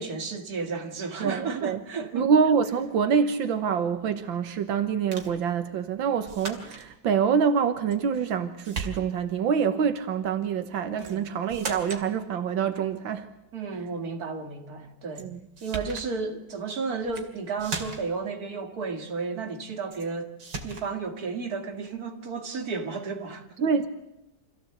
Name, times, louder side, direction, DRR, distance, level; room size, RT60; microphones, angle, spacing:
voice 1, 0.0-2.3 10.9-11.2 13.5-15.3 15.6-20.3 20.6-23.7, right 4 dB, 50° right, 2.7 m, -33 dB
voice 2, 1.2-1.8 2.1-13.3 15.2-15.4 23.6-23.9, right 6 dB, 90° right, 2.0 m, -26 dB
sound 1, 5.1-5.4 6.3-6.9 7.9-8.4 8.6-9.3 11.0-11.2 11.5-12.1 15.1-15.3 15.6-16.1 17.0-17.3 17.6-18.2 19.9-20.1 20.4-20.9, right 4 dB, 70° right, 3.2 m, -37 dB
26.0 x 15.5 x 8.0 m
omnidirectional pair, 2.0 m